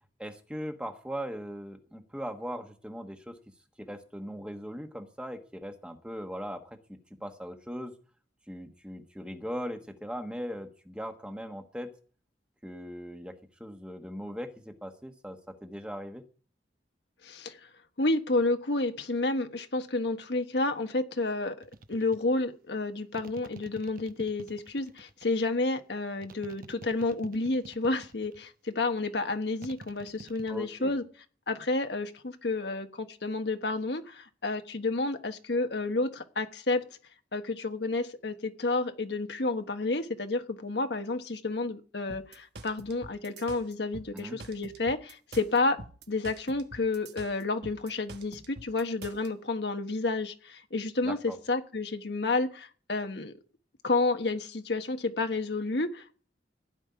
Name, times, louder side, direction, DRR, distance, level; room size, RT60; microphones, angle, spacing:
voice 1, 0.2-3.4 3.8-7.9 8.5-11.9 12.6-16.2 30.5-30.9 44.1-44.4 51.0-51.4, equal, 5° right, 5 dB, 1.3 m, -39 dB
voice 2, 17.2-17.6 18.0-31.0 31.5-36.8 37.3-45.8 46.1-53.3 53.8-56.2, left 2 dB, 70° left, 7 dB, 1.3 m, -30 dB
sound 1, 21.6-22.2 23.1-25.3 26.2-28.5 29.6-30.6, right 2 dB, 50° right, 0.9 m, -47 dB
sound 2, 42.1-49.3, right 2 dB, 70° right, 1.3 m, -46 dB
15.5 x 5.5 x 9.6 m, 0.41 s
head